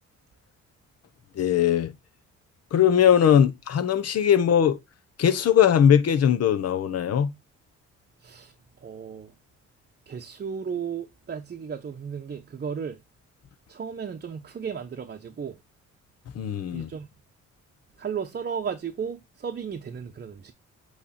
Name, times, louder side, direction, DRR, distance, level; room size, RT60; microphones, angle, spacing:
voice 1, 1.4-1.9 2.7-4.8 5.2-7.3 16.3-16.9, left 9 dB, 55° left, 1.1 m, -20 dB
voice 2, 8.2-8.5 8.8-9.3 10.1-13.0 13.7-15.6 16.7-17.1 18.0-20.5, right 7 dB, 35° right, 0.8 m, -34 dB
8.3 x 3.3 x 4.2 m
cardioid pair, 90°, 30 cm